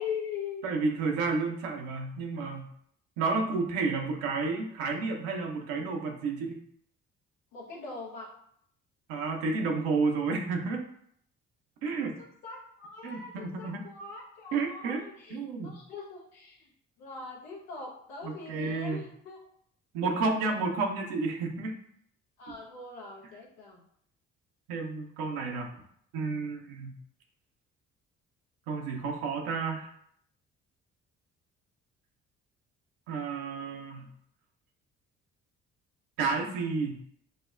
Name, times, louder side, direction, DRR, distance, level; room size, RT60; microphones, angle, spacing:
voice 1, 0.0-0.6 7.5-8.3 12.4-16.7 17.0-19.4 22.4-23.8, left 5 dB, 75° left, -1 dB, 1.0 m, -41 dB
voice 2, 0.6-2.7 3.2-6.6 9.1-10.8 11.8-12.2 13.0-13.8 14.5-15.0 15.3-15.7 18.2-19.0 19.9-21.7 24.7-25.7 26.1-26.9 28.7-29.9 33.1-34.1 36.2-37.0, right 4 dB, 70° right, 2 dB, 0.7 m, -31 dB
5.1 x 2.1 x 2.5 m, 0.69 s
hypercardioid pair, 50°, 37 cm